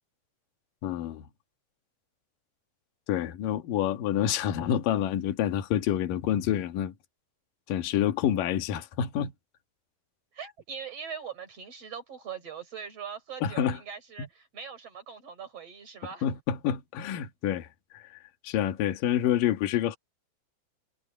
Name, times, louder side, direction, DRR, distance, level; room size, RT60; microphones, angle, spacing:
voice 1, 0.8-1.3 3.1-6.9 7.7-9.3 13.4-13.8 14.2-14.3 16.2-17.7 17.9-18.2 18.4-20.0, left 10 dB, 60° left, 2.5 m, -28 dB
voice 2, 10.3-16.2, right 7 dB, 30° right, 5.3 m, -41 dB
omnidirectional pair, 5.8 m